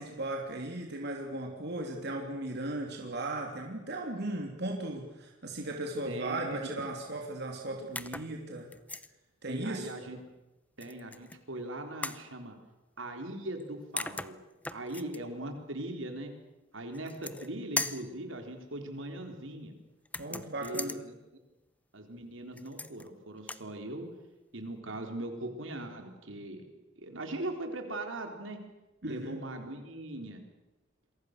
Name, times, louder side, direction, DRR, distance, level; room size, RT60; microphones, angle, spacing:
voice 1, 0.0-8.7 9.4-9.9 20.2-21.0 29.0-29.4, right 2 dB, 60° right, 1 dB, 3.3 m, -37 dB
voice 2, 6.1-6.6 9.5-10.2 10.8-12.6 13.0-14.4 14.7-16.3 16.7-19.7 20.3-21.1 21.9-24.1 24.5-26.6 27.0-28.6 29.1-30.4, right 1 dB, 80° right, 4 dB, 4.0 m, -40 dB
sound 1, 8.0-8.3 8.7-9.1 10.8-11.4 12.0-12.3 13.6-13.7 14.0-15.2 16.9-17.5 17.8-18.1 20.1-21.0 22.6-23.1 23.4-23.7, left 2 dB, 10° left, 0.8 m, -38 dB
27.5 x 23.5 x 6.8 m, 1.0 s
head